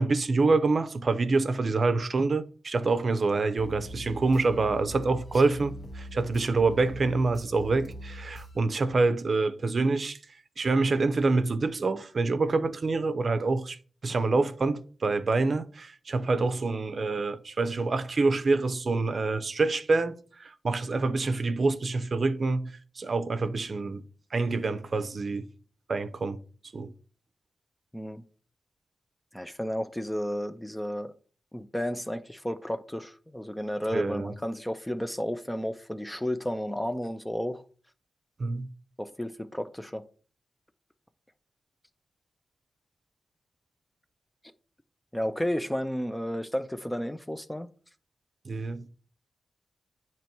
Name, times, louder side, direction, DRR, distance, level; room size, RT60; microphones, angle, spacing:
voice 1, 0.0-10.2 10.6-13.8 14.0-24.0 24.3-25.5 25.9-26.4 26.7-26.9 33.9-34.3 38.4-38.7 48.5-48.9, right 3 dB, 50° right, 0.6 m, -26 dB
sound 1, 3.6-8.6, equal, 40° left, 0.8 m, -42 dB
voice 2, 29.3-31.1 31.5-37.6 39.0-40.0 45.1-47.7, equal, 10° left, 0.4 m, -32 dB
9.0 x 3.0 x 4.4 m
cardioid pair, 80°, 0 cm